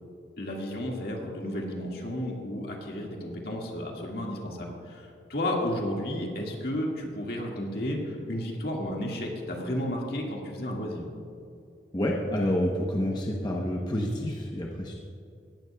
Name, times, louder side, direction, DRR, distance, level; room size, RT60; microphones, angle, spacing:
voice 1, 0.4-11.1, left 1 dB, 60° left, -1 dB, 1.9 m, -32 dB
voice 2, 11.9-15.0, equal, 25° left, -1 dB, 0.9 m, -28 dB
17.5 x 12.5 x 2.3 m, 2.5 s
head